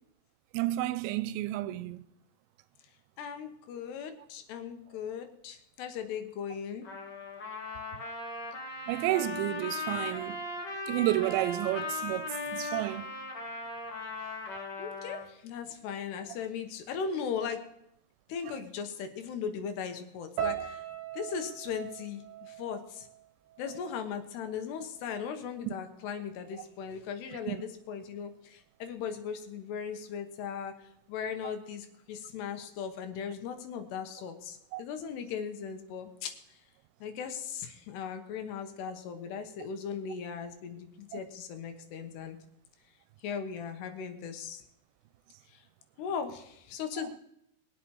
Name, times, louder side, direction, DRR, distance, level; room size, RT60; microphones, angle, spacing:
voice 1, 0.5-2.0 8.9-10.4 10.9-13.1 20.6-20.7 25.7-25.8 27.5-27.6 34.7-34.8, right 16 dB, 90° right, 2.9 m, -31 dB
voice 2, 3.2-6.9 14.8-17.6 18.3-20.8 21.1-23.1 23.6-36.6 37.0-42.4 43.2-44.6 45.5-45.6 46.0-47.2, left 7 dB, 75° left, 3.2 m, -38 dB
Trumpet, 6.8-15.3, left 3 dB, 40° left, 1.6 m, -38 dB
sound 1, 20.4-24.6 24.8-25.6 26.2-26.4, right 10 dB, 65° right, 3.8 m, -40 dB
22.0 x 8.0 x 4.8 m
omnidirectional pair, 5.0 m